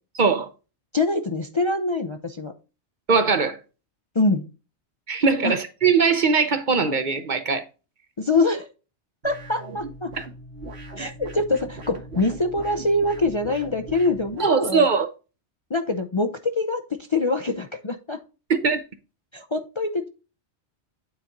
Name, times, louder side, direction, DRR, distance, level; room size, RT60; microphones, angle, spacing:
voice 1, 0.2-0.5 3.1-3.6 5.1-7.6 14.4-15.1 18.5-18.8, right 5 dB, 45° right, 0.8 m, -20 dB
voice 2, 0.9-2.5 4.1-4.5 5.4-5.6 8.2-8.7 9.2-10.2 11.0-14.9 15.7-18.2 19.3-20.1, left 2 dB, 35° left, 0.5 m, -24 dB
sound 1, 9.2-14.6, right 2 dB, 65° right, 1.6 m, -39 dB
8.9 x 4.2 x 3.8 m
omnidirectional pair, 1.2 m